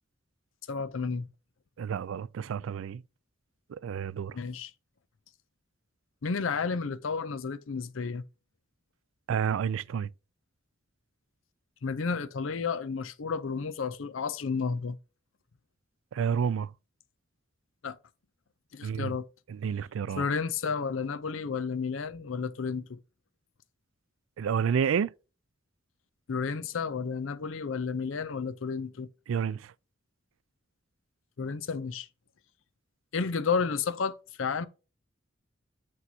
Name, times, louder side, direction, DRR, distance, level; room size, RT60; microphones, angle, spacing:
voice 1, 0.7-1.3 4.3-4.7 6.2-8.3 11.8-15.0 17.8-18.0 18.7-19.3 20.2-23.0 26.3-29.1 31.4-32.1 33.1-34.7, left 5 dB, 90° left, 0.6 m, -32 dB
voice 2, 1.8-3.0 3.7-4.4 9.3-10.1 16.1-16.7 18.8-19.1 19.5-20.3 24.4-25.1 29.3-29.7, right 7 dB, 90° right, 0.3 m, -30 dB
8.2 x 4.6 x 2.8 m
head